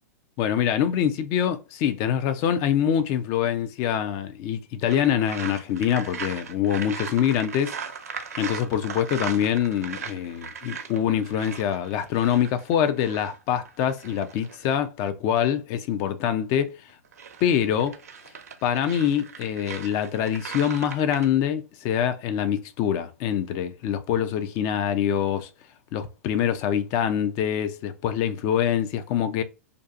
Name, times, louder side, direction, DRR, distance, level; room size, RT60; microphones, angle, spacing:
voice 1, 0.4-7.7 8.4-16.7 17.4-18.0 18.6-25.5 25.9-29.4, left 9 dB, 40° left, 0.4 m, -25 dB
sound 1, 4.9-14.8 16.9-21.3, right 6 dB, 75° right, 0.6 m, -38 dB
2.5 x 2.4 x 2.4 m
hypercardioid pair, 105°, 8 cm